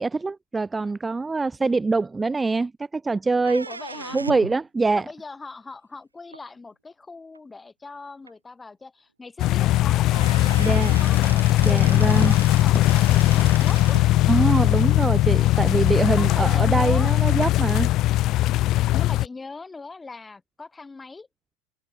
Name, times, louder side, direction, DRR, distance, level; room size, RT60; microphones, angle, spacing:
voice 1, 0.0-3.7 4.1-5.0 10.6-11.0 11.6-12.4 14.3-17.9, right 3 dB, 15° right, 1.6 m, -24 dB
sound 1, 3.4-4.6 6.3-6.4 7.4-7.5 7.9-8.0 8.3-8.4 9.7-9.8 10.1-14.1, right 4 dB, 90° right, 1.4 m, -37 dB
voice 2, 3.7-4.2 4.9-10.3 10.9-11.2 11.5-14.0 16.2-17.1 18.9-21.3, left 3 dB, 15° left, 3.6 m, -40 dB
sound 2, 9.4-19.3, left 16 dB, 45° left, 0.4 m, -19 dB
figure-of-eight pair, 80°, 0 cm